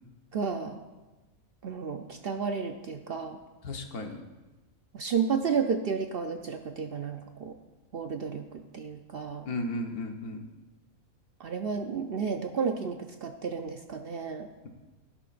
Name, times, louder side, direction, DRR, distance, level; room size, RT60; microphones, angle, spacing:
voice 1, 0.3-0.8 1.6-3.4 4.9-7.5 7.9-9.5 11.4-14.5, right 6 dB, 55° right, 5 dB, 0.7 m, -32 dB
voice 2, 3.6-4.2 9.4-10.5, left 1 dB, 90° left, 3 dB, 1.7 m, -34 dB
17.0 x 11.0 x 2.5 m, 1.2 s
omnidirectional pair, 1.5 m